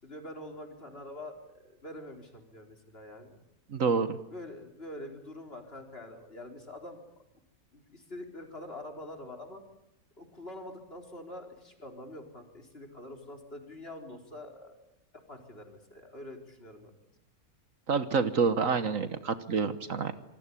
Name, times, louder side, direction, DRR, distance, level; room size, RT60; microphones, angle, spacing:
voice 1, 0.0-3.4 4.3-7.0 7.7-9.6 10.2-14.8 15.1-16.9, left 1 dB, 40° left, 3 dB, 4.4 m, -45 dB
voice 2, 3.7-4.2 17.9-20.1, right 5 dB, 60° right, 11 dB, 1.6 m, -28 dB
27.0 x 20.0 x 9.9 m, 0.83 s
omnidirectional pair, 1.6 m